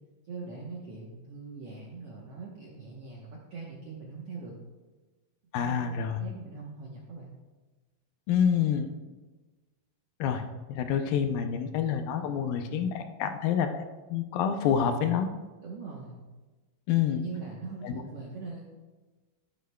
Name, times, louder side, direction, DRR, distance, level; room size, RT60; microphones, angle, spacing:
voice 1, 0.3-4.5 5.6-7.3 15.6-16.2 17.1-18.7, right 4 dB, 70° right, -3 dB, 1.4 m, -41 dB
voice 2, 5.5-6.2 8.3-8.9 10.2-13.8 14.1-15.3 16.9-17.2 17.8-18.0, left 8 dB, 80° left, 7 dB, 2.3 m, -27 dB
11.5 x 11.0 x 2.2 m, 1.2 s
omnidirectional pair, 4.2 m